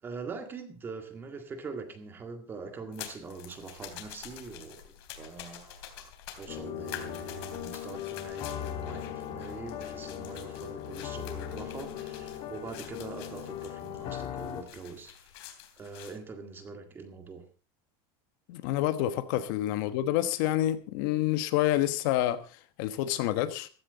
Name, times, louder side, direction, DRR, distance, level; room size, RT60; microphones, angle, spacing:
voice 1, 0.0-6.1 6.4-15.4 15.8-17.5 19.3-19.4, right 4 dB, 15° right, 1.9 m, -43 dB
sound 1, 2.9-16.2, left 10 dB, 75° left, 3.3 m, -47 dB
sound 2, 6.5-14.6, left 11 dB, 35° left, 1.9 m, -39 dB
voice 2, 18.5-23.7, left 13 dB, 55° left, 1.2 m, -28 dB
15.5 x 14.5 x 4.1 m
supercardioid pair, 175°, 13 cm